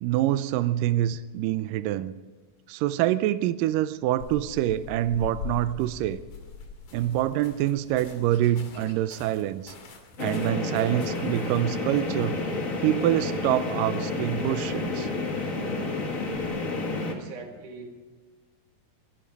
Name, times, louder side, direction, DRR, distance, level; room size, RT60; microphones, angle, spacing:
voice 1, 0.0-2.1 2.7-6.2 6.9-9.7 10.2-12.4 12.8-15.1, right 13 dB, 85° right, 13 dB, 1.9 m, -26 dB
sound 1, 4.2-16.6, left 6 dB, 55° left, 3.8 m, -45 dB
sound 2, 10.2-17.1, left 3 dB, 40° left, 1.1 m, -30 dB
voice 2, 17.1-17.9, right 3 dB, 55° right, 3 dB, 3.2 m, -41 dB
23.0 x 12.5 x 4.7 m, 1.4 s
omnidirectional pair, 4.5 m